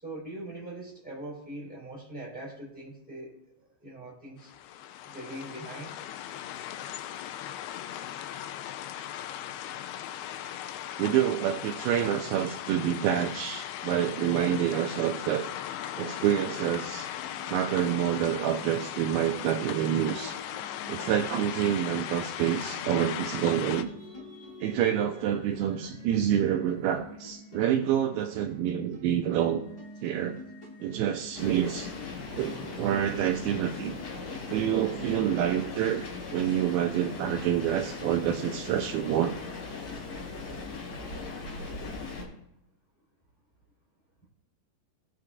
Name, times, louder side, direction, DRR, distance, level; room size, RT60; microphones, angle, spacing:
voice 1, 0.0-3.4 3.8-4.5 5.0-6.0, right 1 dB, ahead, -5 dB, 3.9 m, -41 dB
sound 1, 4.4-23.8, left 11 dB, 85° left, 2.3 m, -38 dB
voice 2, 11.0-15.5 16.0-17.1 17.5-20.4 20.9-23.9 24.6-29.6 30.0-30.4 30.8-31.9 32.4-34.0 34.5-36.0 36.3-39.4, right 10 dB, 85° right, 4 dB, 2.2 m, -27 dB
sound 2, 17.1-35.9, left 2 dB, 15° left, 1.5 m, -48 dB
sound 3, 31.3-42.2, left 4 dB, 55° left, 4.2 m, -39 dB
19.0 x 6.5 x 2.6 m, 0.78 s
omnidirectional pair, 4.9 m